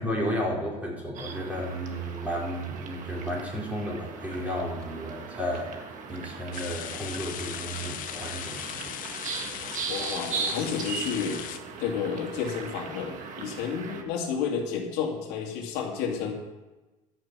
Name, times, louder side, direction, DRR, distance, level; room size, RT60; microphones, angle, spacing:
voice 1, 0.0-8.8 9.1-9.4, equal, 10° right, -3 dB, 4.0 m, -33 dB
sound 1, 1.1-14.0, right 6 dB, 50° right, 1.6 m, -38 dB
sound 2, 6.5-11.6, left 12 dB, 50° left, 0.7 m, -38 dB
voice 2, 9.9-16.3, left 6 dB, 70° left, 1 dB, 2.2 m, -31 dB
13.5 x 6.6 x 5.9 m, 1.1 s
supercardioid pair, 105°, 17 cm